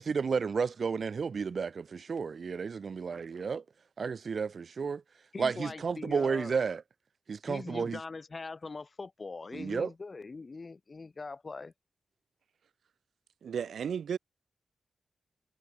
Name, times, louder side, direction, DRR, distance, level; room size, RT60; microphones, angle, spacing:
voice 1, 0.0-3.6 4.0-5.0 5.4-6.8 7.3-8.0 9.5-9.9, right 5 dB, 50° right, 1.2 m, -32 dB
voice 2, 5.3-6.5 7.5-11.7, left 3 dB, 35° left, 2.7 m, -42 dB
voice 3, 13.4-14.2, right 7 dB, 80° right, 2.1 m, -33 dB
wide cardioid pair, 140°, 0 cm